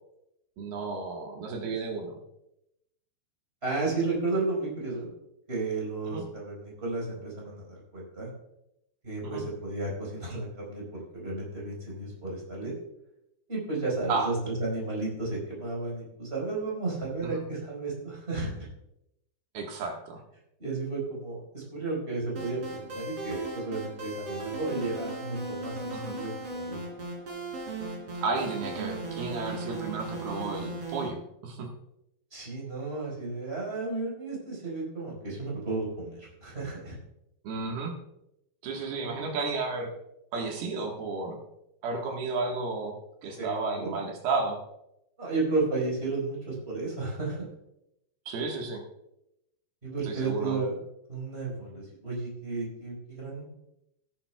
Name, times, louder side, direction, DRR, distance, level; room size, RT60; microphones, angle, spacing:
voice 1, 0.6-2.2 6.1-6.2 9.2-9.4 14.1-14.3 17.2-17.4 19.5-20.2 25.9-26.2 28.2-31.7 37.4-37.9 38.6-39.9 40.3-41.4 41.8-43.0 43.2-44.6 48.3-48.8 50.0-50.6, right 3 dB, 65° right, 1 dB, 3.1 m, -32 dB
voice 2, 3.6-5.1 5.5-8.3 9.0-12.7 13.5-18.7 20.6-26.3 26.6-26.8 32.3-37.0 39.0-39.2 43.4-43.9 45.2-47.4 49.8-50.8 51.1-53.4, right 3 dB, 15° right, -4 dB, 4.2 m, -33 dB
sound 1, 22.4-31.1, right 2 dB, 35° right, 3.8 m, -37 dB
17.5 x 11.0 x 2.3 m, 0.84 s
omnidirectional pair, 5.1 m